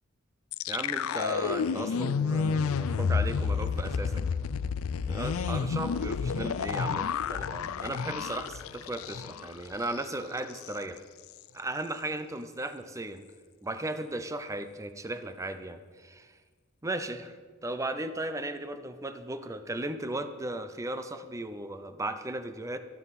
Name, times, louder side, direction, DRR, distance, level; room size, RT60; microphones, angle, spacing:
sound 1, 0.5-9.5 9.8-10.0 10.4-10.8, left 6 dB, 80° left, 0.4 m, -30 dB
voice 1, 0.7-4.2 5.1-11.0 11.5-13.2 13.6-16.4 16.8-17.4 17.6-22.8, right 2 dB, 15° right, 10 dB, 0.5 m, -36 dB
13.0 x 12.5 x 4.2 m, 1.5 s
head